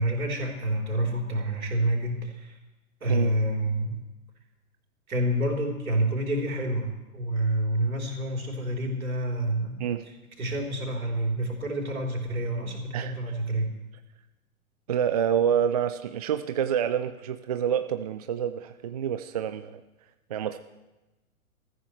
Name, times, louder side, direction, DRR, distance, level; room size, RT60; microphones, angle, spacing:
voice 1, 0.0-2.5 3.0-4.0 5.1-9.8 10.4-13.7, right 1 dB, 70° right, 0 dB, 3.9 m, -28 dB
voice 2, 14.9-19.8 20.3-20.6, right 8 dB, 30° right, 9 dB, 0.4 m, -27 dB
23.0 x 14.0 x 3.3 m, 1.0 s
figure-of-eight pair, 115°, 44 cm